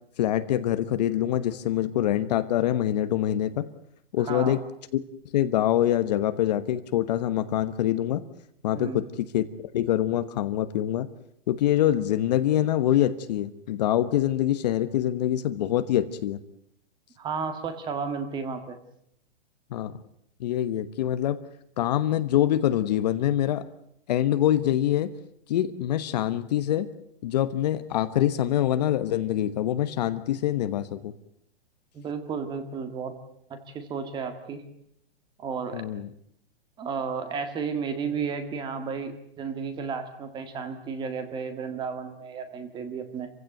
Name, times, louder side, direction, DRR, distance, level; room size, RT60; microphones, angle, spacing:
voice 1, 0.2-3.7 4.1-4.6 4.9-5.0 5.3-8.2 8.6-9.4 9.7-11.1 11.5-16.4 19.7-20.0 20.4-21.4 21.8-23.6 24.1-25.1 25.5-26.9 27.2-31.1 35.7-36.1, left 12 dB, 45° left, 12 dB, 1.2 m, -25 dB
voice 2, 4.2-4.6 8.7-9.0 17.2-18.8 31.9-33.1 33.5-34.6 35.4-35.8 36.8-43.3, right 5 dB, 15° right, 9 dB, 1.9 m, -33 dB
27.0 x 16.0 x 9.1 m, 0.72 s
hypercardioid pair, 165°, 30 cm